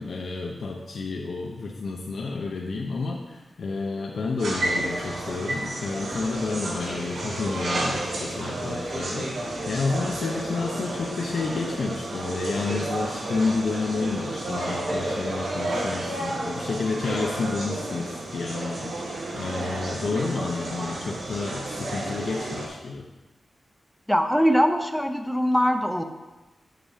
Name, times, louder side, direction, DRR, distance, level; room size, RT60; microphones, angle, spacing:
voice 1, 0.0-23.1, left 4 dB, 70° left, 0 dB, 0.8 m, -30 dB
sound 1, 4.4-22.7, right 1 dB, 85° right, 1.9 m, -31 dB
voice 2, 24.1-26.0, equal, ahead, 6 dB, 0.7 m, -22 dB
7.9 x 6.1 x 5.0 m, 1.1 s
wide cardioid pair, 130°, 0 cm